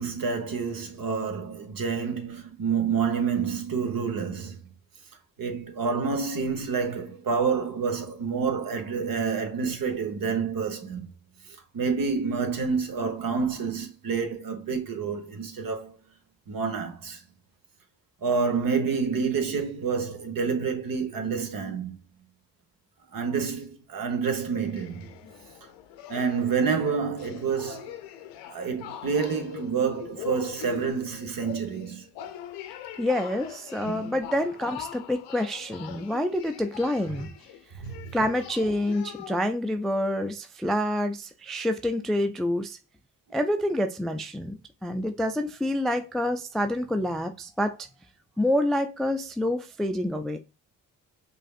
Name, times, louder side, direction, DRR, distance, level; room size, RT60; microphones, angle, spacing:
voice 1, 0.0-4.6 5.4-11.1 11.5-16.0 16.5-17.2 18.2-22.0 23.1-25.1 26.1-27.9 28.5-32.0 33.8-34.1 37.8-38.1, right 5 dB, 50° right, 1.1 m, -28 dB
sound 1, 24.6-39.4, left 10 dB, 75° left, 0.7 m, -42 dB
voice 2, 33.0-37.3 38.1-42.8 43.3-47.8 48.4-50.4, left 1 dB, ahead, 0.3 m, -27 dB
4.9 x 2.6 x 2.4 m
hypercardioid pair, 45°, 42 cm